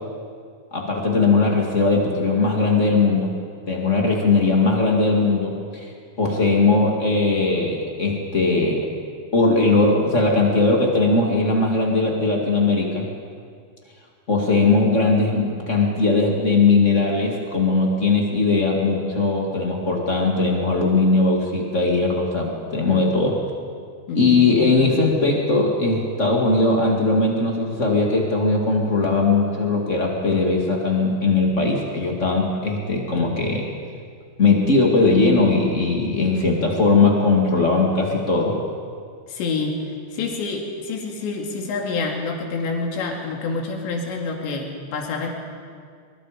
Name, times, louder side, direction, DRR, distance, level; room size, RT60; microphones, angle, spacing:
voice 1, 0.7-3.3 3.7-5.9 6.2-8.9 9.3-13.1 14.3-23.4 24.1-33.7 34.4-38.5, left 3 dB, 40° left, 0 dB, 1.0 m, -19 dB
voice 2, 24.1-24.4 39.3-39.8 40.1-45.3, left 4 dB, 75° left, 1 dB, 4.7 m, -27 dB
23.5 x 23.0 x 5.1 m, 2.1 s
omnidirectional pair, 5.2 m